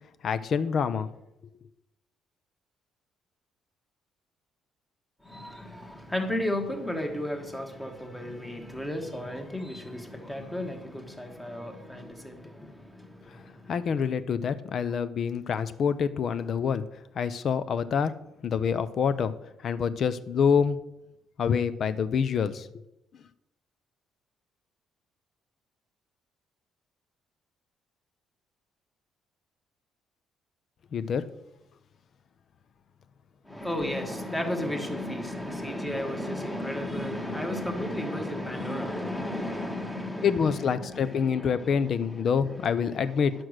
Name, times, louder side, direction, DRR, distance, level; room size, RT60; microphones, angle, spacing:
voice 1, 0.2-1.1 13.3-13.4 13.7-16.8 17.2-18.1 18.4-19.3 19.6-20.8 21.4-22.7 30.9-31.3 40.2-43.3, left 6 dB, 40° left, 0.6 m, -26 dB
voice 2, 5.2-14.0 33.4-43.2, left 1 dB, 5° left, 1.3 m, -34 dB
11.0 x 6.1 x 6.4 m
cardioid pair, 160°, 0 cm